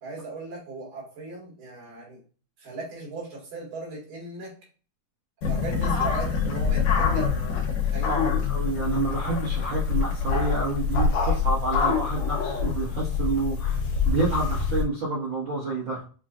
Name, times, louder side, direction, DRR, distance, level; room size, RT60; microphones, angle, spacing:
voice 1, 0.0-2.2 2.6-4.5 5.4-7.4 7.7-8.2, right 3 dB, 75° right, -4 dB, 3.5 m, -37 dB
sound 1, 5.4-14.8, left 6 dB, 75° left, 2.4 m, -25 dB
voice 2, 8.1-16.0, right 3 dB, 50° right, -9 dB, 1.6 m, -29 dB
7.0 x 2.4 x 2.4 m, 0.39 s
omnidirectional pair, 3.9 m